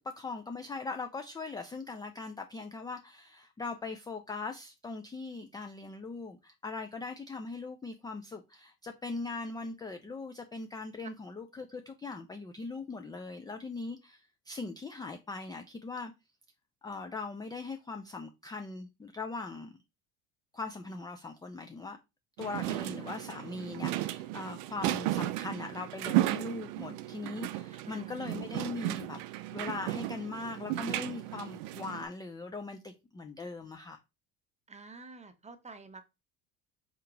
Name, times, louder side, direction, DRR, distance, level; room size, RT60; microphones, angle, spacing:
voice 1, 0.0-16.1 16.8-19.8 20.5-22.0 22.4-29.2 29.5-34.0, left 3 dB, 10° left, 0.3 m, -40 dB
sound 1, 22.4-32.0, right 15 dB, 85° right, 0.6 m, -34 dB
voice 2, 22.7-23.2 27.8-28.1 34.7-36.0, right 3 dB, 15° right, 0.8 m, -49 dB
4.6 x 2.9 x 3.8 m
supercardioid pair, 95°, 45 cm